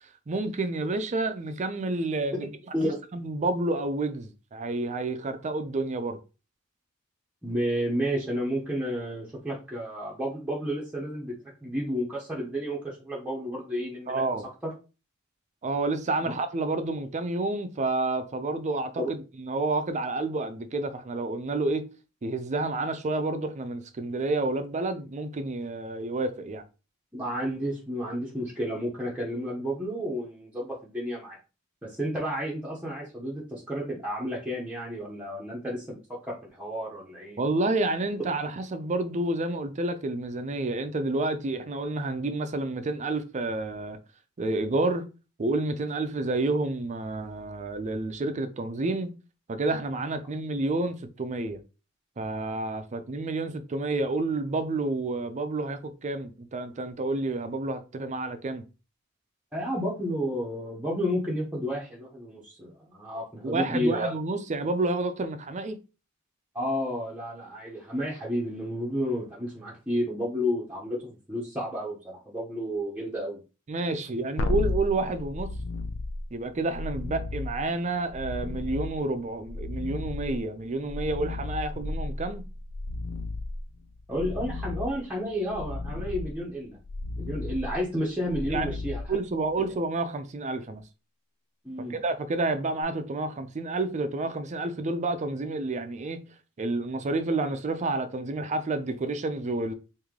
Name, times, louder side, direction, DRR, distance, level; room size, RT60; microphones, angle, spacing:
voice 1, 0.3-2.5 2.8-6.2 14.1-14.5 15.6-21.8 22.2-26.6 37.4-44.0 44.4-45.0 45.4-49.1 49.5-51.6 52.2-58.7 63.4-65.8 73.7-75.5 76.3-82.4 88.5-88.7 89.1-90.8 91.9-96.2 96.6-99.7, right 2 dB, 35° right, 0.4 m, -29 dB
voice 2, 7.4-11.3 11.6-14.4 14.6-14.7 19.0-19.1 27.1-31.4 31.8-37.4 59.5-64.1 66.5-73.4 84.1-86.8 87.2-89.0 91.6-92.0, equal, 5° right, 0.7 m, -31 dB
sound 1, 74.4-89.7 92.8-92.9, left 2 dB, 75° left, 0.5 m, -34 dB
3.1 x 2.6 x 3.6 m
head